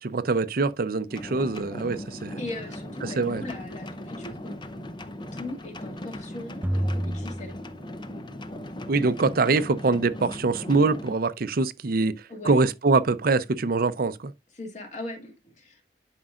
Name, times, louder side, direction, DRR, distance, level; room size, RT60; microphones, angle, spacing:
voice 1, 0.0-2.4 3.0-3.4 8.9-12.1 12.4-14.2, right 3 dB, 55° right, 0.6 m, -24 dB
sound 1, 1.1-11.1, left 1 dB, 25° left, 0.7 m, -38 dB
voice 2, 2.4-4.6 5.3-7.6 12.3-12.5 14.5-15.8, left 2 dB, 40° left, 2.3 m, -39 dB
sound 2, 6.6-8.4, equal, 10° right, 0.6 m, -30 dB
11.0 x 5.3 x 2.4 m
head